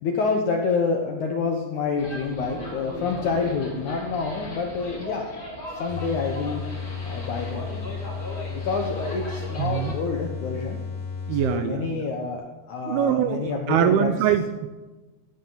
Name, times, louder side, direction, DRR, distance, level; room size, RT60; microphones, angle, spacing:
voice 1, 0.0-5.3 5.7-6.6 7.0-8.0 8.5-10.8 11.3-14.1, left 4 dB, 70° left, 1 dB, 1.9 m, -28 dB
sound 1, 2.0-9.9, left 1 dB, 20° left, 4.5 m, -38 dB
sound 2, 5.9-12.0, left 5 dB, 50° left, 2.7 m, -34 dB
voice 2, 9.6-9.9 11.3-12.0 12.8-14.7, right 9 dB, 80° right, 9 dB, 2.3 m, -23 dB
17.5 x 12.5 x 4.0 m, 1.2 s
omnidirectional pair, 4.9 m